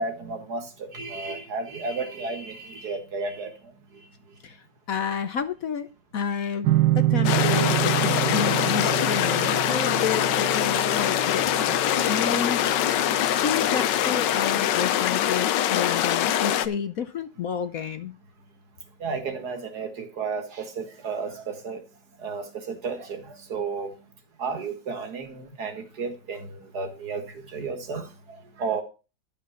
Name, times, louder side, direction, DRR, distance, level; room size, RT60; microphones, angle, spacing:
voice 1, 0.0-3.5 12.2-12.3 13.0-13.1 19.0-21.8 22.2-23.9 24.4-28.8, right 4 dB, 60° right, 7 dB, 2.1 m, -33 dB
voice 2, 4.9-5.9 6.1-13.1 13.4-18.1, left 7 dB, 60° left, 10 dB, 1.1 m, -30 dB
sound 1, 6.6-13.8, right 15 dB, 80° right, 1.3 m, -27 dB
sound 2, 7.2-16.7, left 11 dB, 80° left, 1.3 m, -23 dB
11.5 x 5.7 x 5.6 m, 0.32 s
omnidirectional pair, 1.9 m